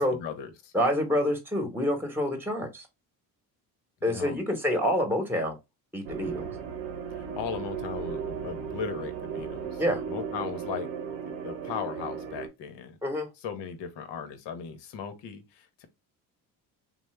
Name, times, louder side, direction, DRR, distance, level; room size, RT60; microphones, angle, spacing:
voice 1, 0.0-0.7 4.1-4.4 7.1-10.9 11.3-13.0 13.4-15.9, left 7 dB, 65° left, 0.9 m, -38 dB
voice 2, 0.7-2.9 4.0-5.6 5.9-6.5 9.8-10.0 13.0-13.3, equal, 5° right, 1.1 m, -27 dB
sound 1, 6.0-12.5, right 7 dB, 80° right, 0.8 m, -36 dB
3.0 x 2.0 x 3.1 m
supercardioid pair, 60°, 45 cm